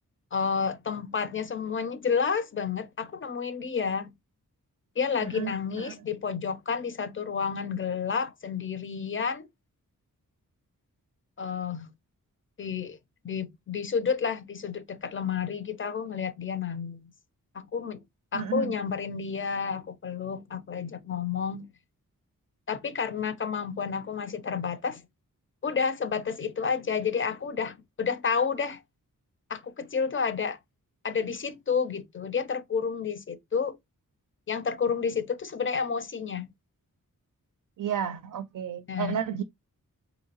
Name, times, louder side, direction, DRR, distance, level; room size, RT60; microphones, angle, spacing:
voice 1, 0.3-4.1 5.0-9.5 11.4-11.9 12.6-13.0 13.2-17.1 17.5-18.0 18.3-21.7 22.7-25.0 25.6-28.8 29.5-30.6 31.0-33.8 34.5-36.5 38.9-39.2, left 6 dB, 35° left, 0.5 m, -30 dB
voice 2, 5.2-5.9 18.3-18.8 37.8-39.4, right 9 dB, 65° right, 0.5 m, -32 dB
4.0 x 2.7 x 2.8 m
wide cardioid pair, 120°, 33 cm